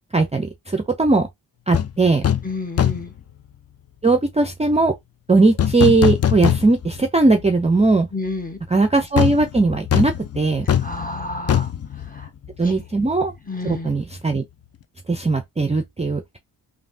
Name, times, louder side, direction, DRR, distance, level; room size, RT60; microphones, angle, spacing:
voice 1, 0.1-1.3 1.7-2.2 4.0-4.9 5.3-8.1 8.7-10.7 12.6-13.3 13.6-14.4 15.1-16.4, right 3 dB, 15° right, 0.5 m, -19 dB
sound 1, 1.7-1.9 2.2-2.5 2.8-3.2 5.6-7.0 7.4-7.5 9.2-12.8 13.1-13.2, left 9 dB, 35° left, 0.5 m, -22 dB
voice 2, 2.4-3.1 8.1-8.6 10.8-11.7 12.1-12.3 12.6-12.7 13.5-13.9, left 2 dB, 20° left, 1.1 m, -30 dB
3.2 x 2.6 x 2.6 m
cardioid pair, 50°, 42 cm